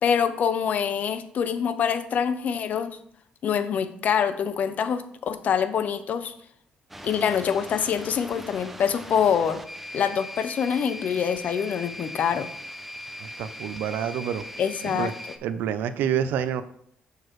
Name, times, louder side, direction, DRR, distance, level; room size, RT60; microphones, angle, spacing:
voice 1, 0.0-2.9 3.4-6.3 7.0-9.6 9.9-12.5 14.6-15.1, left 7 dB, 55° left, 12 dB, 0.6 m, -25 dB
sound 1, 6.9-15.4, left 1 dB, 5° right, 0.6 m, -40 dB
voice 2, 13.2-14.4 14.8-15.1 15.4-16.6, right 9 dB, 85° right, 12 dB, 0.5 m, -28 dB
6.7 x 6.3 x 3.1 m, 0.66 s
cardioid pair, 115°, 3 cm